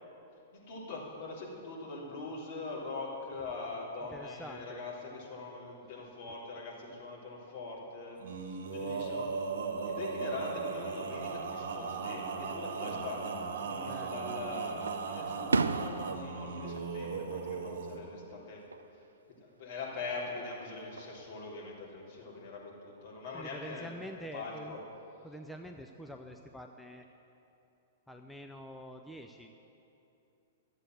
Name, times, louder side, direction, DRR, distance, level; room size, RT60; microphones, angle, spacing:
voice 1, 0.5-9.3 9.8-18.6 19.4-23.9 24.3-24.8, left 3 dB, 55° left, -5 dB, 3.5 m, -42 dB
voice 2, 4.1-4.8 5.8-6.0 13.8-14.3 23.3-24.8 25.2-27.1 28.1-29.5, equal, 5° left, 3 dB, 0.6 m, -46 dB
Male singing, 8.2-18.0, right 5 dB, 60° right, 1.4 m, -37 dB
Fireworks, 13.7-14.4 14.9-18.0 18.3-18.9 20.4-21.2, right 4 dB, 85° right, 0.4 m, -36 dB
12.0 x 8.1 x 7.7 m, 2.9 s
figure-of-eight pair, 110°, 0 cm